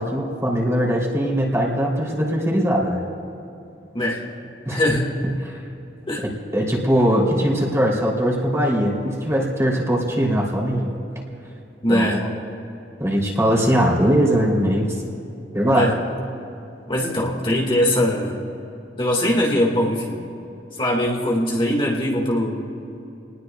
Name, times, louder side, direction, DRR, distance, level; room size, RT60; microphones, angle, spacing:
voice 1, 0.0-3.0 4.6-5.0 5.2-5.6 6.2-10.9 11.9-12.3 13.0-15.0 15.5-15.9, equal, 15° right, -2 dB, 3.2 m, -21 dB
voice 2, 4.7-5.1 6.1-6.3 11.8-12.2 15.7-16.0 16.9-18.4 19.0-20.2 20.8-22.7, left 1 dB, 30° left, -2 dB, 1.9 m, -21 dB
29.5 x 20.0 x 2.3 m, 2.8 s
head